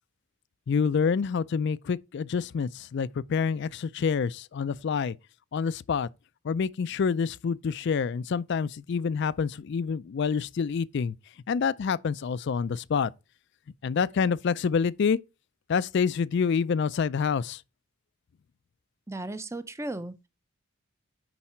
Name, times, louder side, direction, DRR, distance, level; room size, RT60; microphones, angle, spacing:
voice 1, 0.7-5.2 5.5-6.1 6.4-11.1 11.5-13.1 13.8-15.2 15.7-17.6, left 6 dB, 50° left, 0.3 m, -27 dB
voice 2, 19.1-20.3, right 2 dB, 10° right, 0.5 m, -36 dB
10.0 x 4.7 x 4.3 m
head